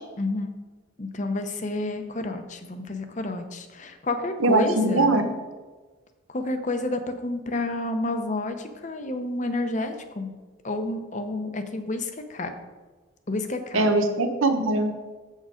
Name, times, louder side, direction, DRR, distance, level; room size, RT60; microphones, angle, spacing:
voice 1, 0.2-0.5 1.0-5.1 6.3-10.3 10.6-12.5 13.3-13.9, left 2 dB, 35° left, 7 dB, 0.7 m, -30 dB
voice 2, 4.4-5.3 13.7-14.9, right 2 dB, 85° right, 6 dB, 1.0 m, -21 dB
7.5 x 6.5 x 5.1 m, 1.3 s
head